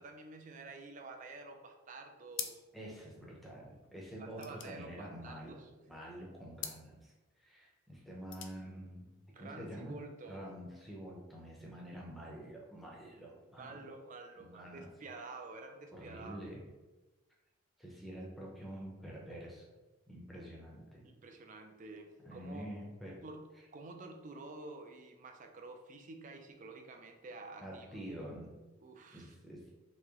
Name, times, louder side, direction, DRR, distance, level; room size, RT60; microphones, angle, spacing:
voice 1, 0.0-2.6 4.2-5.8 9.3-10.4 13.6-16.4 21.0-22.7 23.2-28.0 28.8-29.3, right 3 dB, 35° right, 5 dB, 0.3 m, -50 dB
sound 1, 2.3-2.9 3.2-3.3 3.5-5.7 6.5-6.9 8.0-8.6, left 9 dB, 55° left, 0.4 m, -45 dB
voice 2, 2.7-7.1 7.4-9.1 9.4-10.0 10.3-14.0 14.4-14.9 15.9-16.7 17.8-19.7 20.1-21.0 22.3-23.2 27.6-28.5 29.1-29.6, equal, ahead, -3 dB, 0.6 m, -47 dB
3.1 x 2.8 x 3.6 m, 1.2 s
head